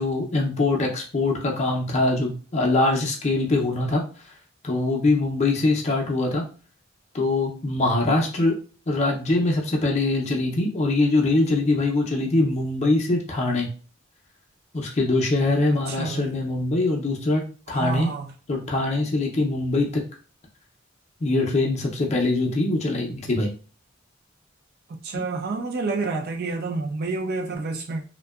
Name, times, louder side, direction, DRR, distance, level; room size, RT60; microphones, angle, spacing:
voice 1, 0.0-4.0 4.6-6.4 7.1-8.5 8.9-13.7 14.7-18.1 18.5-20.0 21.2-23.5, left 2 dB, 35° left, 0.5 m, -23 dB
voice 2, 15.7-16.4 17.7-18.3 25.0-28.0, right 3 dB, 50° right, 0.4 m, -29 dB
2.5 x 2.1 x 2.3 m
head